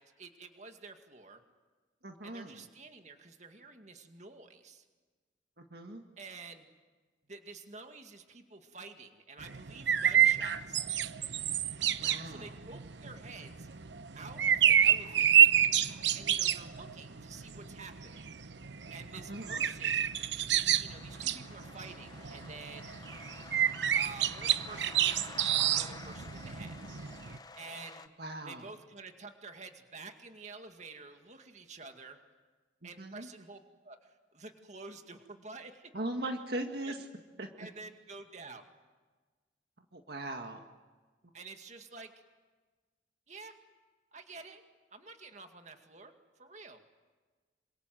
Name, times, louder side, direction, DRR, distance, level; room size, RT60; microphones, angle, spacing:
voice 1, 0.0-1.4 2.2-4.8 6.2-6.7 7.3-10.8 12.2-13.7 14.1-15.5 16.1-18.3 18.9-20.1 20.5-22.9 23.9-26.7 27.6-28.0 28.4-32.2 32.8-35.9 36.9-37.0 37.6-38.6 41.3-42.1 43.3-43.5 44.1-44.6 44.9-46.1 46.4-46.8, right 4 dB, 40° right, 5 dB, 2.2 m, -49 dB
voice 2, 2.0-2.6 5.6-6.0 11.8-12.5 19.1-19.6 28.2-28.6 32.8-33.3 35.9-37.1 37.4-37.5 39.9-40.6, right 1 dB, 55° right, 4 dB, 1.8 m, -39 dB
sound 1, 9.4-27.4, right 9 dB, 70° right, 0.9 m, -29 dB
sound 2, 20.9-28.1, left 3 dB, 20° left, 0.9 m, -49 dB
27.0 x 26.5 x 7.7 m, 1.3 s
head